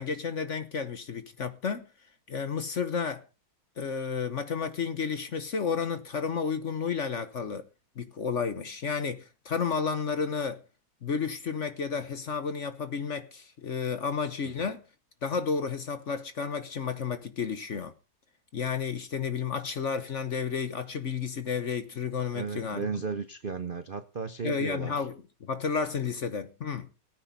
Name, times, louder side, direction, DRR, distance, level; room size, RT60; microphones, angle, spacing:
voice 1, 0.0-1.9 2.3-3.2 3.8-7.6 8.0-10.6 11.0-14.8 15.2-17.9 18.5-22.9 24.4-26.9, left 6 dB, 45° left, 1.1 m, -32 dB
voice 2, 22.3-25.1, right 5 dB, 55° right, 0.6 m, -35 dB
18.5 x 9.3 x 4.1 m
omnidirectional pair, 2.1 m